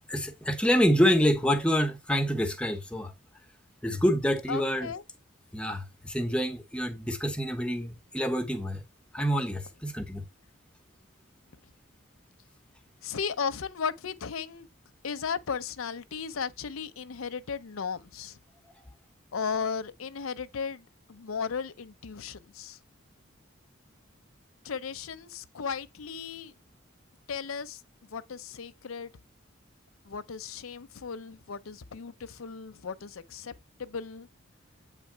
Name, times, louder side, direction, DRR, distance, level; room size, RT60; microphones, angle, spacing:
voice 1, 0.1-3.1 3.8-4.9 5.5-8.8 9.1-10.2, equal, 5° left, 0.9 m, -27 dB
voice 2, 4.5-5.0 13.0-14.7 15.0-18.4 19.3-22.8 24.6-26.5 27.3-29.1 30.0-33.5 33.8-34.3, left 6 dB, 80° left, 0.6 m, -35 dB
8.2 x 3.5 x 4.5 m
head